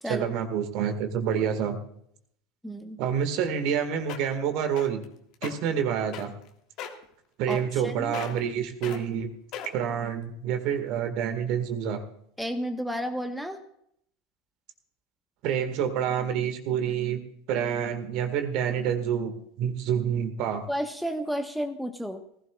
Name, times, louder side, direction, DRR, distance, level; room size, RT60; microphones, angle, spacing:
voice 1, 0.1-1.8 3.0-5.0 5.4-6.3 7.4-9.3 9.7-12.0 15.4-17.2 17.5-19.3 19.6-20.6, right 8 dB, 50° right, 7 dB, 1.9 m, -28 dB
voice 2, 2.6-3.0 7.5-8.1 12.4-13.6 20.7-22.2, equal, ahead, 7 dB, 1.3 m, -32 dB
sound 1, 3.7-3.8 4.1-4.4 4.8-5.0 5.3-5.5 6.1-6.5 6.8-7.0 7.5-7.9 8.1-8.5 8.8-9.0 9.5-9.9 10.5-10.6, left 9 dB, 45° left, 1.9 m, -37 dB
19.0 x 16.0 x 2.5 m, 0.69 s
figure-of-eight pair, 80°, 0 cm